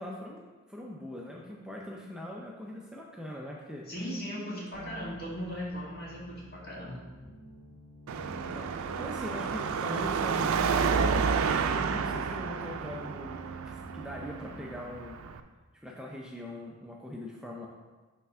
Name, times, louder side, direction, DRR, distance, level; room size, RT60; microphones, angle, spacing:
voice 1, 0.0-3.9 8.3-11.3 11.7-13.3 13.6-15.2 15.7-17.7, left 1 dB, 5° right, -2 dB, 0.5 m, -42 dB
voice 2, 3.9-7.0, equal, 50° left, -5 dB, 1.8 m, -38 dB
sound 1, 4.7-14.7, right 2 dB, 30° left, 2.0 m, -48 dB
Car passing by / Traffic noise roadway noise / Engine, 8.1-15.4, right 5 dB, 85° right, 0.4 m, -30 dB
5.8 x 3.3 x 5.5 m, 1.3 s
head